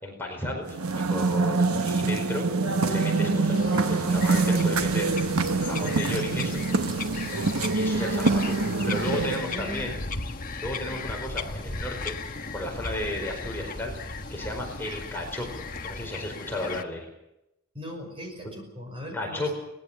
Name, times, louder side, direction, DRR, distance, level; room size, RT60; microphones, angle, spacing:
voice 1, 0.0-5.1 5.5-6.6 7.7-10.0 10.6-17.1 18.4-18.5 19.1-19.6, left 1 dB, 10° left, 0 dB, 4.7 m, -34 dB
sound 1, 0.7-9.6, right 3 dB, 85° right, 1.2 m, -25 dB
Bird vocalization bird call bird song, 3.5-16.8, left 5 dB, 40° left, 1.3 m, -38 dB
sound 2, 4.1-16.1, equal, 55° left, 6.4 m, -41 dB
voice 2, 9.5-9.9 17.7-19.6, equal, 25° right, 4 dB, 5.8 m, -39 dB
23.0 x 20.0 x 7.3 m, 0.88 s
head